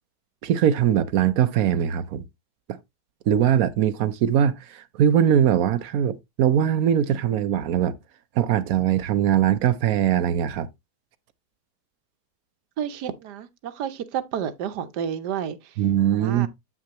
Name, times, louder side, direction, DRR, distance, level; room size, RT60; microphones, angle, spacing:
voice 1, 0.4-2.3 2.7-2.8 3.3-8.0 8.4-10.7 15.8-16.5, right 9 dB, 70° right, 1.0 m, -21 dB
voice 2, 12.8-15.7 16.1-16.5, right 9 dB, 85° right, 1.3 m, -31 dB
8.5 x 5.9 x 2.8 m
omnidirectional pair, 1.7 m